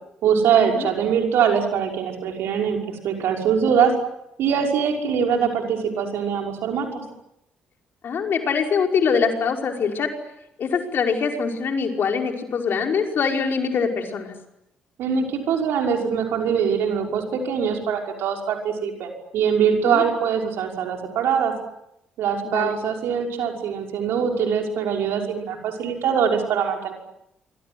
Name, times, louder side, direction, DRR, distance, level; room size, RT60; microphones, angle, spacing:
voice 1, 0.2-3.9 4.4-7.0 15.0-21.5 22.2-26.9, right 7 dB, 65° right, 2 dB, 5.8 m, -23 dB
voice 2, 8.0-10.1 10.6-14.3 19.9-20.0 22.4-22.7, left 6 dB, 55° left, 3 dB, 5.3 m, -23 dB
26.5 x 26.0 x 8.0 m, 0.82 s
hypercardioid pair, 45°, 4 cm